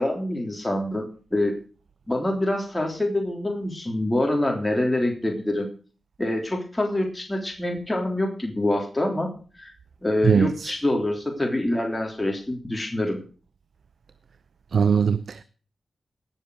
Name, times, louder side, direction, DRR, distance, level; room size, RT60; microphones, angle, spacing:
voice 1, 0.0-1.5 2.1-5.7 6.2-9.7 10.0-13.2, left 1 dB, 15° left, 3.4 m, -25 dB
voice 2, 10.2-10.7 14.7-15.4, right 6 dB, 70° right, 0.6 m, -21 dB
17.5 x 7.4 x 6.4 m
cardioid pair, 45°, 0 cm